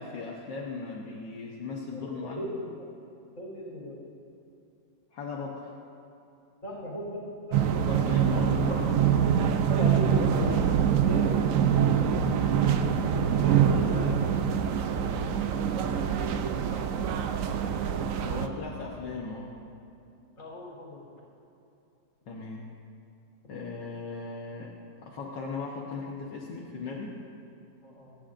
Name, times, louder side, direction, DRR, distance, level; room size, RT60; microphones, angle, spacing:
voice 1, 0.0-2.5 5.1-5.7 7.6-8.9 10.4-10.8 12.3-12.6 13.4-14.0 18.2-19.5 22.3-22.6 23.5-24.7 25.0-27.2, left 4 dB, 70° left, -3 dB, 1.7 m, -38 dB
voice 2, 1.9-2.7 3.4-4.0 6.6-7.2 7.5-7.6 8.5-8.8 9.5-10.6 11.0-11.4 13.4-14.2 15.0-15.5 16.5-17.2 20.4-21.0 27.8-28.2, equal, 45° left, -5 dB, 4.1 m, -37 dB
sound 1, 7.5-18.5, right 8 dB, 65° right, 0.8 m, -25 dB
28.0 x 10.0 x 2.6 m, 2.7 s
omnidirectional pair, 2.0 m